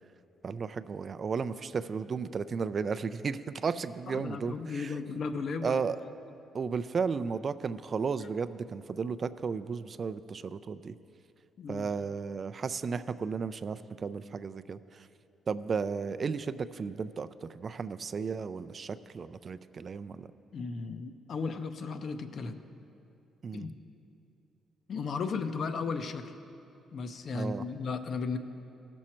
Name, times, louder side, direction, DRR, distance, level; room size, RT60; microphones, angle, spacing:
voice 1, 0.4-4.9 5.6-6.0 6.5-10.9 11.7-15.1 15.5-20.3 23.4-23.7 27.3-27.6, right 5 dB, 45° right, 12 dB, 0.3 m, -34 dB
voice 2, 4.1-5.8 11.6-11.9 20.5-22.6 23.5-23.7 24.9-26.3 26.9-28.4, left 4 dB, 55° left, 9 dB, 0.6 m, -35 dB
16.0 x 6.2 x 4.4 m, 2.7 s
cardioid pair, 90°, 0 cm